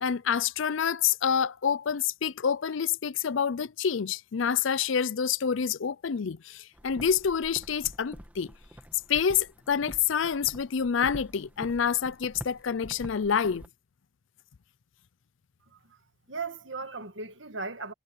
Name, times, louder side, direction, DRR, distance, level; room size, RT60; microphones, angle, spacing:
voice 1, 0.0-8.5 9.1-13.7, left 7 dB, 80° left, 0.5 m, -27 dB
sound 1, 6.7-13.7, equal, 10° right, 1.5 m, -47 dB
voice 2, 16.3-17.9, right 4 dB, 75° right, 1.8 m, -37 dB
head